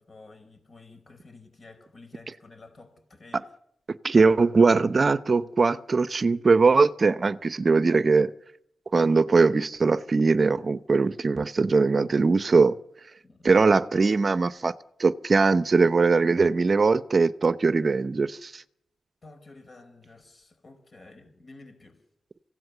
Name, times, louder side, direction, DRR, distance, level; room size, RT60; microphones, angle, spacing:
voice 1, 0.0-3.5 13.2-13.6 19.2-22.0, left 3 dB, 45° left, 4.5 m, -51 dB
voice 2, 4.0-8.3 8.9-12.8 13.4-14.7 15.0-18.6, right 4 dB, 40° right, 0.8 m, -21 dB
25.5 x 16.5 x 6.9 m
cardioid pair, 85°, 0 cm